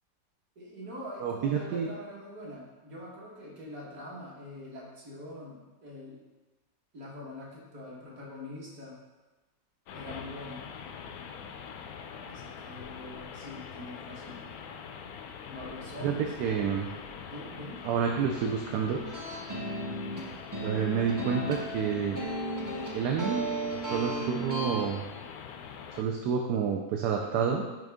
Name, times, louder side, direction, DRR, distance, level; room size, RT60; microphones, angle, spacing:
voice 1, 0.6-6.2 6.9-9.0 9.9-10.6 12.3-14.4 15.5-16.5 17.3-17.8, left 1 dB, 55° right, -4 dB, 2.0 m, -44 dB
voice 2, 1.2-1.9 16.0-16.1 16.4-16.9 17.8-19.0 20.6-22.2 22.9-23.4 23.9-25.0 26.0-27.7, right 7 dB, 75° right, 2 dB, 1.1 m, -29 dB
sound 1, 9.9-26.0, left 7 dB, 70° left, 0.9 m, -44 dB
sound 2, 19.1-24.8, right 2 dB, 30° right, 0.3 m, -35 dB
6.4 x 5.2 x 3.5 m, 1.1 s
omnidirectional pair, 1.9 m